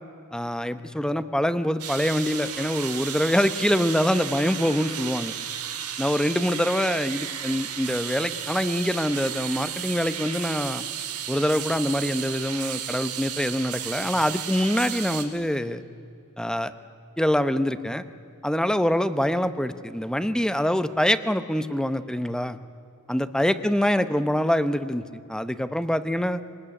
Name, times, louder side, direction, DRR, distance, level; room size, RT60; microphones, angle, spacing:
voice 1, 0.3-5.4 6.0-10.8 11.3-15.8 16.4-16.7 17.2-18.0 18.4-22.6 23.1-25.0 25.3-26.4, equal, 5° left, 12 dB, 0.8 m, -25 dB
sound 1, 1.8-15.2, right 9 dB, 90° right, 2.6 m, -34 dB
25.0 x 20.0 x 10.0 m, 2.6 s
head